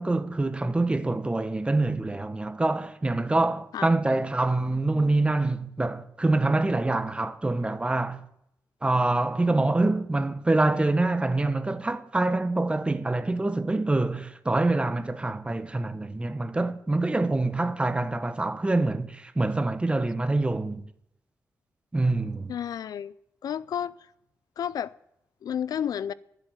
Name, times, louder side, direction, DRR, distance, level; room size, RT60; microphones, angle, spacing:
voice 1, 0.0-8.2 8.8-20.8 21.9-22.5, right 2 dB, 15° right, 0.8 m, -25 dB
voice 2, 22.5-23.1 23.4-24.1 24.6-25.0 25.4-26.1, left 9 dB, 80° left, 0.4 m, -31 dB
11.5 x 8.2 x 8.9 m
wide cardioid pair, 115°, 6 cm